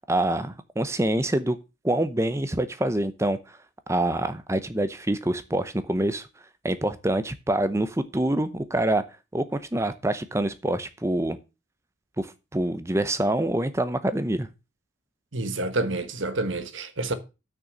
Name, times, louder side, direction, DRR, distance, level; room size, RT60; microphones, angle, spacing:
voice 1, 0.1-1.6 1.8-3.4 3.9-6.3 6.6-9.0 9.3-11.4 12.2-12.3 12.5-14.5, right 1 dB, 15° right, 0.7 m, -26 dB
voice 2, 15.3-17.1, right 2 dB, 90° right, 1.3 m, -28 dB
6.5 x 6.1 x 7.3 m
head